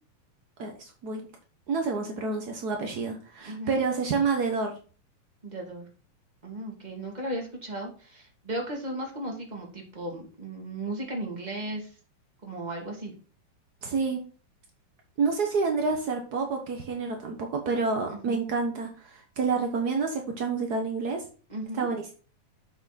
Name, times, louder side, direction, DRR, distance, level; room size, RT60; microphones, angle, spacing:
voice 1, 0.6-1.2 1.7-4.7 13.8-14.3 15.2-21.2 21.7-22.0, right 4 dB, 75° right, 3 dB, 0.9 m, -28 dB
voice 2, 3.4-3.8 5.4-5.9 6.4-11.9 12.4-13.1 18.1-18.4 21.5-21.9, right 1 dB, 15° right, 0 dB, 2.3 m, -36 dB
7.8 x 6.3 x 4.1 m, 0.37 s
omnidirectional pair, 3.6 m